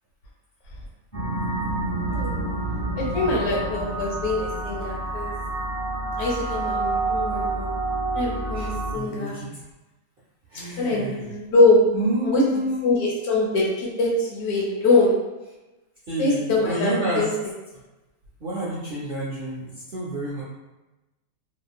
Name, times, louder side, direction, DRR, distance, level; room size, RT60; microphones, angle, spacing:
sound 1, 1.1-8.9, right 3 dB, 10° left, 1.0 m, -28 dB
voice 1, 2.1-2.4 3.0-5.3 6.2-7.7 8.1-9.4 10.8-11.8 12.2-12.4 12.8-15.2 16.2-17.3, left 2 dB, 85° left, -4 dB, 1.3 m, -23 dB
voice 2, 8.5-9.6 10.5-11.3 11.9-13.0 16.1-17.3 18.4-20.4, right 1 dB, 65° right, -7 dB, 0.5 m, -29 dB
2.8 x 2.3 x 2.3 m, 1.1 s
omnidirectional pair, 1.6 m